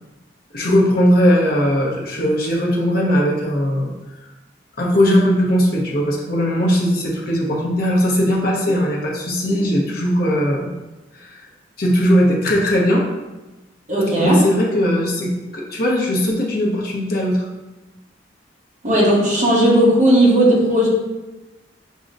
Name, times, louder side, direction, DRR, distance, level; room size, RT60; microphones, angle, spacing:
voice 1, 0.5-3.9 4.8-10.7 11.1-11.4 11.8-13.0 14.2-17.5, equal, 55° left, -2 dB, 0.9 m, -18 dB
voice 2, 13.9-14.4 18.8-20.9, right 1 dB, 40° right, -5 dB, 1.2 m, -15 dB
6.1 x 2.8 x 2.6 m, 1.1 s
head